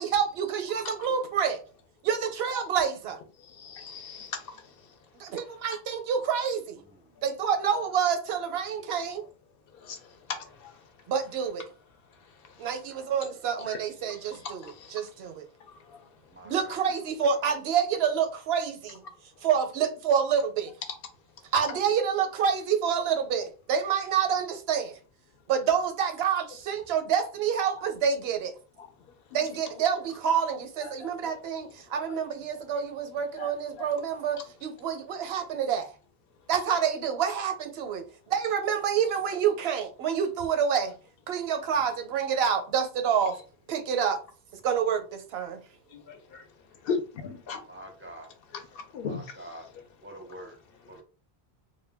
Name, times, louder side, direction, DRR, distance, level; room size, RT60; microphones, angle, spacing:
voice 1, 0.0-1.6 2.0-3.2 5.2-6.8 7.2-9.3 11.1-11.7 12.6-15.5 16.4-19.0 19.4-20.7 21.5-25.0 25.5-28.5 29.3-35.9 36.5-40.9 41.3-43.4 43.7-44.2 44.6-45.6, right 7 dB, 80° right, 0.8 m, -28 dB
voice 2, 3.6-4.3 33.4-33.5 46.9-47.6 48.9-49.2, left 5 dB, 70° left, 0.7 m, -33 dB
voice 3, 12.6-13.2 16.3-16.8 47.7-48.3 49.0-49.7 50.0-50.6 50.9-51.0, right 1 dB, 15° right, 0.4 m, -46 dB
2.2 x 2.1 x 3.3 m
omnidirectional pair, 1.0 m